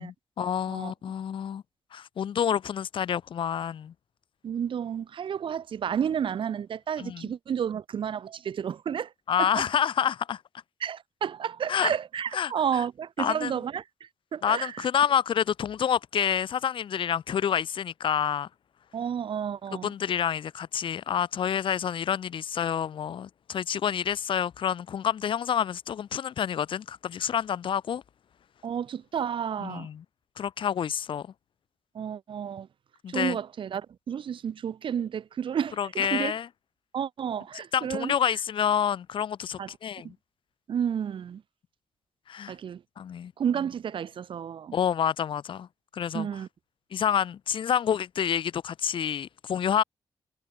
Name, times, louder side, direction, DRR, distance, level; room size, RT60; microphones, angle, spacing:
voice 1, 0.0-1.6 1.9-3.9 7.0-7.3 9.3-10.4 11.7-11.9 12.3-12.5 13.2-13.5 14.4-18.5 19.8-28.0 29.6-30.0 30.4-31.3 33.0-33.4 35.8-36.5 37.7-40.2 42.3-42.5 43.0-43.3 44.7-45.7 45.9-46.3 46.9-49.8, left 8 dB, 85° left, 5.7 m, -28 dB
voice 2, 4.4-9.1 9.4-9.7 10.8-14.9 18.9-19.9 28.6-29.9 31.9-32.7 33.1-36.3 36.9-38.1 39.6-39.7 40.0-40.1 40.7-41.4 42.5-42.8 43.4-44.8 46.1-46.5, right 8 dB, 85° right, 7.7 m, -31 dB
cardioid pair, 95°, 8 cm